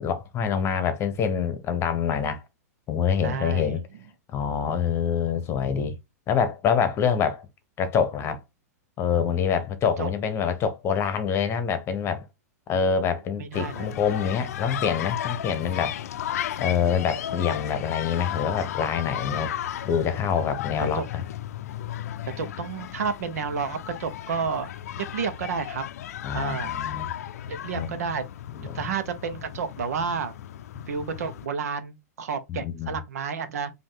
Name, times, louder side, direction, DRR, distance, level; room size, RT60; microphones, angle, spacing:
voice 1, 0.0-2.4 2.9-3.8 4.3-6.0 6.3-7.5 7.8-8.4 9.0-12.2 12.7-16.0 16.6-19.5 19.8-21.2 26.2-27.1 27.7-27.9 28.5-28.8 32.5-32.9, left 7 dB, 30° left, 1.0 m, -26 dB
voice 2, 3.2-3.8 10.0-10.1 13.4-13.9 19.3-19.5 19.8-19.9 20.8-21.1 22.4-25.8 26.3-26.7 27.5-28.2 28.6-30.3 30.9-33.7, right 6 dB, 70° right, 1.1 m, -31 dB
sound 1, 13.5-31.5, left 11 dB, 70° left, 0.5 m, -35 dB
5.1 x 2.8 x 3.8 m
hypercardioid pair, 120°, 9 cm